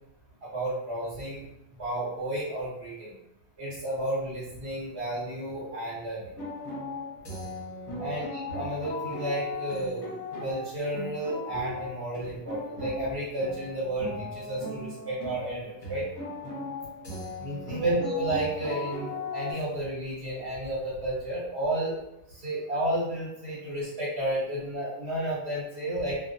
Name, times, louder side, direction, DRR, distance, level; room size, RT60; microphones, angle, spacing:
voice 1, 0.4-1.4 1.8-3.1 3.6-6.4 8.0-8.3 8.5-10.0 10.4-16.1 17.4-21.9 22.3-26.2, right 1 dB, 70° right, -8 dB, 1.1 m, -32 dB
sound 1, 6.2-19.5, left 2 dB, 35° left, 0.8 m, -37 dB
2.2 x 2.1 x 2.6 m, 0.86 s
omnidirectional pair, 1.1 m